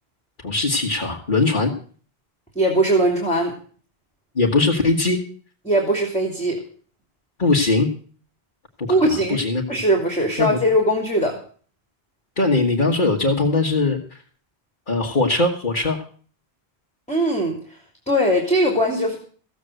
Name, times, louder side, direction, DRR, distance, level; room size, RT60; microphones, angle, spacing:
voice 1, 0.4-1.7 4.4-5.2 7.4-7.9 8.8-9.6 10.4-10.6 12.4-14.2 14.9-16.0, left 3 dB, 50° left, -2 dB, 1.9 m, -20 dB
voice 2, 2.5-3.5 5.6-6.6 8.9-9.4 9.7-11.4 17.1-17.8 18.1-19.2, right 1 dB, 5° left, 1 dB, 2.8 m, -20 dB
15.5 x 7.9 x 8.0 m, 0.43 s
omnidirectional pair, 1.1 m